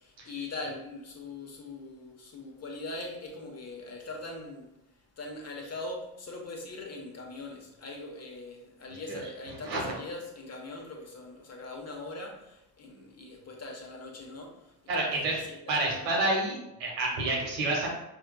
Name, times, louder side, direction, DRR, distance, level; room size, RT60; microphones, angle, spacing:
voice 1, 0.0-4.7 5.2-16.3, left 2 dB, 30° left, 1 dB, 1.0 m, -41 dB
voice 2, 14.9-15.4 15.7-17.9, right 2 dB, 80° right, -2 dB, 1.2 m, -29 dB
5.4 x 2.8 x 2.2 m, 0.87 s
figure-of-eight pair, 45°, 49 cm